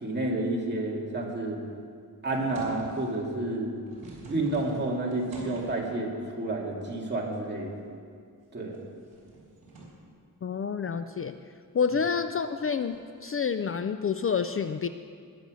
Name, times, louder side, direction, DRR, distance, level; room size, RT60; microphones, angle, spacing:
voice 1, 0.0-1.6 2.2-3.7 4.3-6.1 6.4-7.8 8.5-8.8, right 2 dB, 30° right, -2 dB, 2.2 m, -30 dB
sound 1, 2.2-3.2 3.7-6.0 6.9-7.4 7.8-7.9 8.5-10.0 12.9-13.1, right 2 dB, 65° right, 4.0 m, -45 dB
voice 2, 10.4-11.3 11.7-14.9, left 6 dB, 40° left, 10 dB, 0.4 m, -28 dB
20.5 x 7.0 x 6.2 m, 2.2 s
wide cardioid pair, 160°, 36 cm